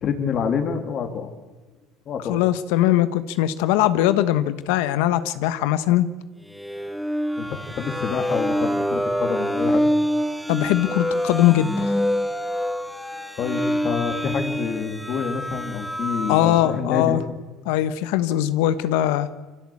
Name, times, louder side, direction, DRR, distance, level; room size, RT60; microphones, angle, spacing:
voice 1, 0.0-1.3 2.1-2.4 7.4-9.9 13.4-17.2, left 6 dB, 40° left, 6 dB, 2.7 m, -27 dB
voice 2, 2.3-6.1 10.5-11.9 16.3-17.2 17.7-19.3, left 13 dB, 85° left, 13 dB, 1.1 m, -21 dB
sound 1, 6.5-16.8, equal, ahead, 1.0 m, -26 dB
25.0 x 16.0 x 8.6 m, 1.3 s
cardioid pair, 135°, 0 cm